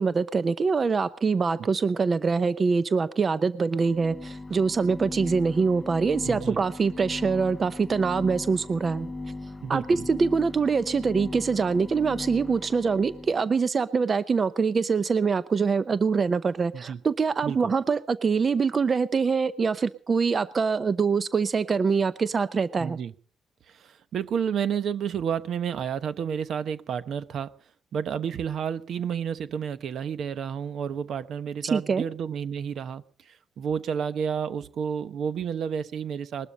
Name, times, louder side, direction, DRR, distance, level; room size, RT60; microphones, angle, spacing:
voice 1, 0.0-9.1 9.7-23.0 31.7-32.0, right 5 dB, 40° right, 14 dB, 0.7 m, -24 dB
sound 1, 3.7-13.4, left 2 dB, 15° left, 0.7 m, -38 dB
voice 2, 6.2-6.6 9.6-10.1 16.7-17.0 17.4-17.7 22.8-23.1 23.7-27.5 27.9-36.5, right 7 dB, 65° right, 13 dB, 1.0 m, -31 dB
20.5 x 12.5 x 5.4 m, 0.43 s
cardioid pair, 90°, 0 cm